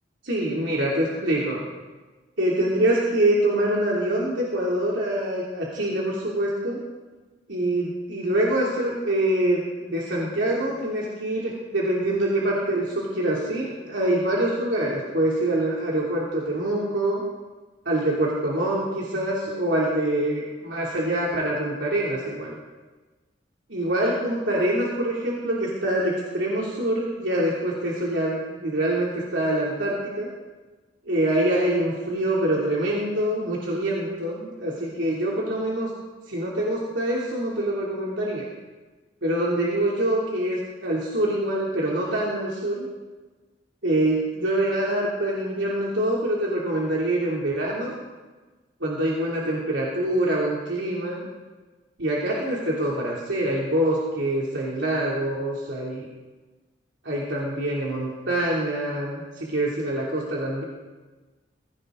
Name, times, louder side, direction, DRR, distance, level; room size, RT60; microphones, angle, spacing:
voice 1, 0.3-1.7 2.4-6.8 7.5-17.2 17.8-22.6 23.7-30.3 31.1-35.9 36.3-38.5 39.2-42.9 43.8-48.0 48.8-51.2 52.0-56.1 57.0-60.6, right 1 dB, 80° right, -5 dB, 3.0 m, -25 dB
21.0 x 16.5 x 3.9 m, 1.3 s
head